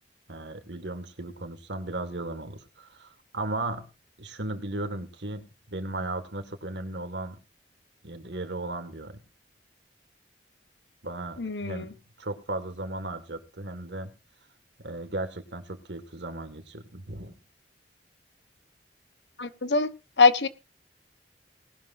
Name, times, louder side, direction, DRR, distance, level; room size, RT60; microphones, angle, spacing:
voice 1, 0.3-3.9 4.2-7.4 8.0-9.2 11.0-11.9 12.2-14.1 14.8-17.3, right 2 dB, 75° right, 8 dB, 2.0 m, -36 dB
voice 2, 11.4-11.9 19.4-19.9 20.2-20.5, left 4 dB, 70° left, 13 dB, 1.1 m, -22 dB
19.5 x 11.5 x 2.7 m, 0.29 s
head